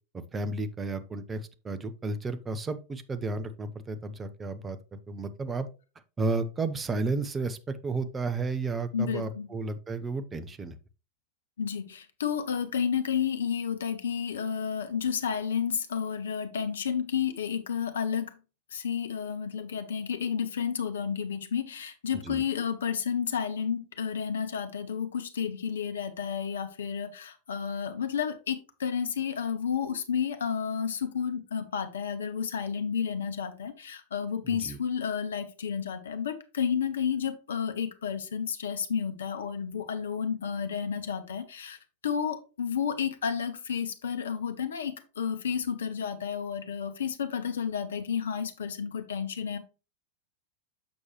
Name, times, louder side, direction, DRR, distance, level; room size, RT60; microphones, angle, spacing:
voice 1, 0.1-4.8 5.1-5.7 6.2-10.7 22.2-22.4 34.5-34.8, right 3 dB, 15° right, 0.7 m, -32 dB
voice 2, 8.9-9.5 11.6-18.3 18.7-41.8 42.0-49.6, left 7 dB, 65° left, 0.9 m, -31 dB
7.2 x 6.2 x 3.0 m
figure-of-eight pair, 90°, 0 cm